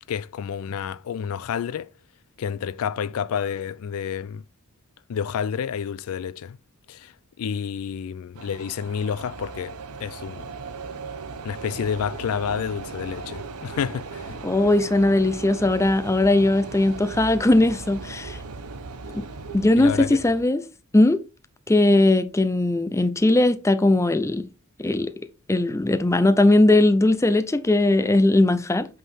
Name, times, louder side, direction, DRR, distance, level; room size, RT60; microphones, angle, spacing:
voice 1, 0.1-1.9 2.4-4.4 5.1-6.6 6.9-10.5 11.4-14.4 19.8-20.2, left 7 dB, 75° left, 0.3 m, -29 dB
sound 1, 8.4-20.4, right 4 dB, 90° right, 0.8 m, -37 dB
voice 2, 14.4-18.4 19.1-19.3 19.5-20.6 20.9-21.2 21.7-24.4 24.8-25.1 25.5-28.9, left 2 dB, 15° left, 0.4 m, -19 dB
8.0 x 3.9 x 4.3 m
head